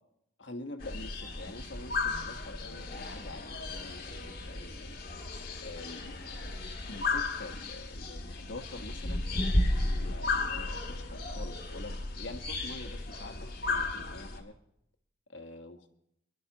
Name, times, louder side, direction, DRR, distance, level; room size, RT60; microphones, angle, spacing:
voice 1, 0.4-5.0 5.6-6.2 6.9-9.2 9.9-14.5 15.3-15.9, left 2 dB, 85° left, 6 dB, 1.4 m, -46 dB
sound 1, 0.8-14.4, left 2 dB, 55° left, 2.1 m, -34 dB
24.0 x 11.5 x 2.9 m, 0.76 s
head